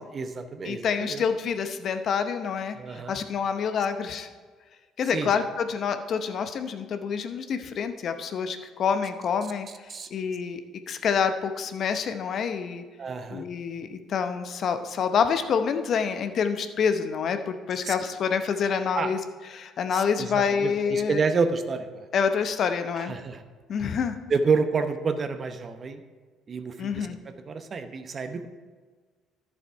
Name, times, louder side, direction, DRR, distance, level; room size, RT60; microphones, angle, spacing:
voice 1, 0.1-1.2 2.7-3.2 5.1-5.3 9.9-10.1 13.0-13.4 17.8-17.9 18.9-19.1 19.9-22.1 23.0-23.4 24.3-26.0 26.5-27.1 27.5-28.5, right 4 dB, 40° right, 9 dB, 0.8 m, -29 dB
voice 2, 0.6-4.3 5.0-9.7 10.1-10.6 10.9-12.8 13.3-19.2 19.5-21.2 22.1-23.1 23.7-24.2 26.8-27.2, left 6 dB, 55° left, 9 dB, 0.8 m, -27 dB
11.0 x 7.1 x 4.6 m, 1.4 s
hypercardioid pair, 60°, 0 cm